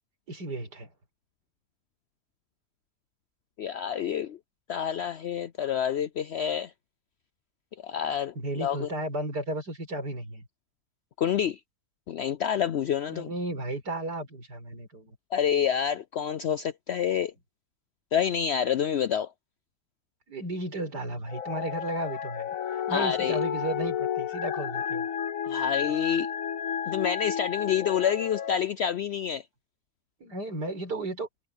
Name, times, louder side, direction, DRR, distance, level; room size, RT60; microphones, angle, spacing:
voice 1, 0.3-0.9 8.4-10.5 13.1-15.2 20.3-25.1 30.2-31.3, right 1 dB, 90° right, 5.7 m, -34 dB
voice 2, 3.6-4.4 4.7-6.7 7.8-8.9 11.2-11.6 12.1-13.3 15.3-17.3 18.1-19.3 22.9-23.3 25.5-26.3 26.9-29.4, left 8 dB, 85° left, 0.5 m, -28 dB
sound 1, 21.3-28.6, left 8 dB, 60° left, 1.2 m, -32 dB
omnidirectional pair, 1.7 m